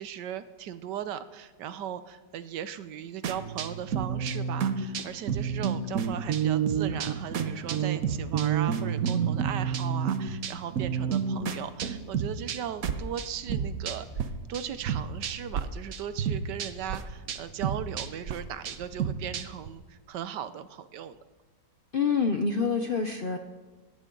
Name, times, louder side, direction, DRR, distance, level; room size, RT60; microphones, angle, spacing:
voice 1, 0.0-14.2 14.5-21.2, right 9 dB, 80° right, 13 dB, 1.4 m, -38 dB
sound 1, 3.2-14.3 14.5-15.6 15.9-19.7, right 7 dB, 60° right, 1.3 m, -30 dB
voice 2, 21.9-23.4, left 5 dB, 50° left, 6 dB, 0.6 m, -26 dB
17.5 x 17.5 x 3.9 m, 1.3 s
omnidirectional pair, 1.9 m